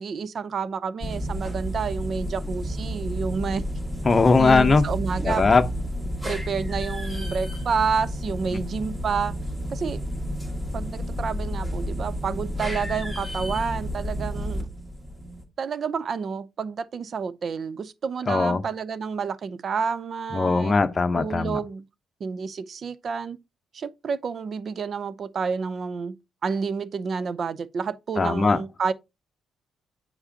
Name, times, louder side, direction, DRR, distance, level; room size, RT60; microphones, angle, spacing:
voice 1, 0.0-3.7 4.4-5.4 6.2-9.3 9.7-10.0 10.7-14.7 15.6-20.8 21.1-21.9 22.2-23.4 23.7-26.2 26.4-28.9, right 5 dB, 50° right, 0.5 m, -29 dB
sound 1, 1.0-15.4, equal, 10° right, 1.8 m, -31 dB
voice 2, 4.0-4.8 5.2-5.6 18.3-18.6 20.3-21.6 28.2-28.6, left 4 dB, 30° left, 0.8 m, -19 dB
7.8 x 4.8 x 2.8 m
cardioid pair, 90°, 0 cm